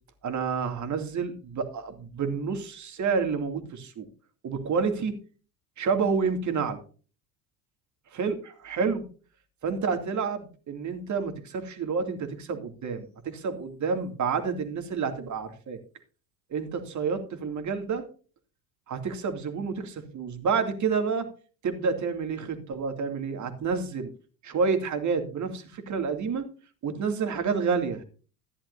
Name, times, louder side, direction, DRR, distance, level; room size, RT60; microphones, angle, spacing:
voice 1, 0.2-4.1 4.4-5.2 5.8-6.8 8.1-9.0 9.6-15.8 16.5-18.0 18.9-21.3 21.6-24.1 24.4-26.4 26.8-28.0, right 5 dB, 40° right, 6 dB, 2.7 m, -29 dB
14.5 x 11.5 x 2.7 m, 0.37 s
hypercardioid pair, 70°, 46 cm